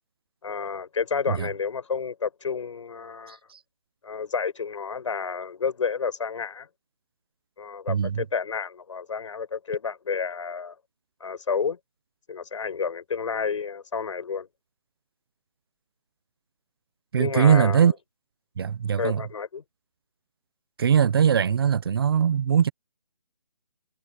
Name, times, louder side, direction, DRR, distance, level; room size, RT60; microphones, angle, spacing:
voice 1, 0.4-3.4 4.0-6.7 7.6-10.7 11.2-11.8 12.3-14.5 17.2-17.9 19.0-19.6, left 5 dB, 60° left, 5.9 m, -30 dB
voice 2, 3.3-3.6 7.9-8.2 17.1-17.9 18.6-19.2 20.8-22.7, right 8 dB, 40° right, 1.1 m, -21 dB
hypercardioid pair, 165°, 18 cm